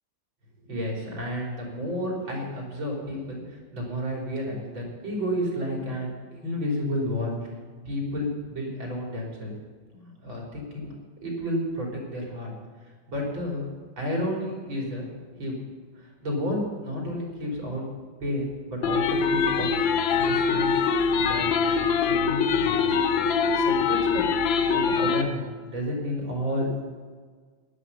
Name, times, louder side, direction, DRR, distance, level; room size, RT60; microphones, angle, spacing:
voice 1, 0.6-7.4 7.8-9.5 9.9-10.9 11.2-12.5 13.1-13.7 14.0-15.0 15.4-15.6 16.0-17.8 18.2-19.7 20.2-20.9 21.1-23.0 23.3-24.2 24.7-26.7, equal, 85° right, -2 dB, 4.6 m, -31 dB
sound 1, 18.8-25.2, left 5 dB, 80° left, 1.6 m, -23 dB
15.0 x 11.5 x 5.7 m, 1.5 s
omnidirectional pair, 2.1 m